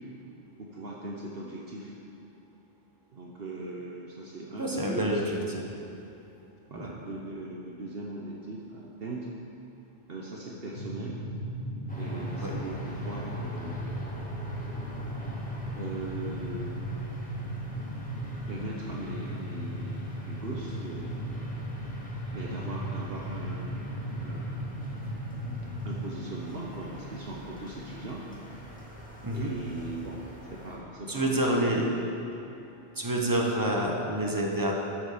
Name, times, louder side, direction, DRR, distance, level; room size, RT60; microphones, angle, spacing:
voice 1, 0.6-1.9 3.1-5.6 6.7-9.3 10.1-11.2 11.9-13.8 15.7-16.8 18.5-21.3 22.3-24.6 25.8-28.3 29.3-31.9, right 2 dB, 60° right, -3 dB, 1.1 m, -39 dB
voice 2, 4.6-5.4 6.7-6.9 12.4-12.6 29.2-29.5 31.1-31.8 33.0-34.7, right 1 dB, 20° right, -1 dB, 1.1 m, -27 dB
sound 1, 10.8-26.0, equal, 65° left, 1.7 m, -36 dB
sound 2, 11.9-30.8, equal, 5° left, 1.7 m, -46 dB
13.0 x 7.3 x 5.0 m, 2.8 s
omnidirectional pair, 1.2 m